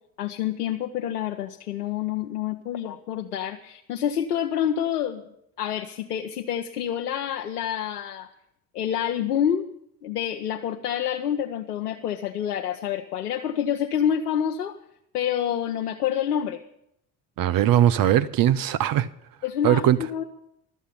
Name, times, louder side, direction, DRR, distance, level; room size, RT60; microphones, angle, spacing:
voice 1, 0.2-5.2 5.6-8.3 8.7-9.7 10.0-14.8 15.1-16.6 19.4-20.2, left 9 dB, 90° left, 0.7 m, -27 dB
voice 2, 17.4-19.1 19.6-20.0, right 11 dB, 50° right, 0.7 m, -20 dB
13.0 x 7.3 x 9.8 m
hypercardioid pair, 60°, 45 cm